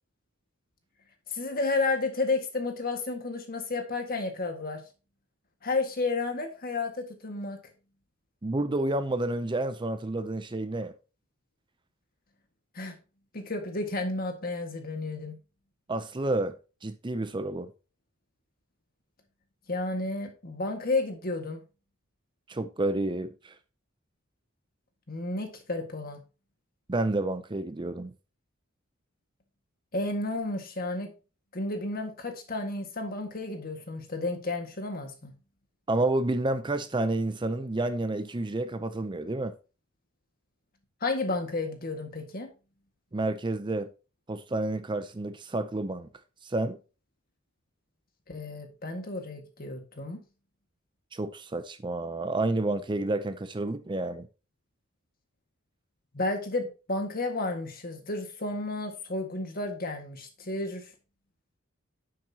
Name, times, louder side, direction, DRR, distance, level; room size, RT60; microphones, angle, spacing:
voice 1, 1.3-4.8 5.6-7.6 12.8-13.0 13.3-15.4 19.7-21.6 25.1-26.2 29.9-31.1 31.5-35.3 41.0-42.5 48.3-50.2 56.1-60.9, left 3 dB, 45° left, 1.8 m, -32 dB
voice 2, 8.4-10.9 15.9-16.5 16.8-17.7 22.5-23.5 26.9-28.1 35.9-39.5 43.1-43.9 44.3-46.1 46.4-46.8 51.1-54.3, right 2 dB, 25° right, 0.6 m, -30 dB
9.5 x 7.7 x 2.9 m
head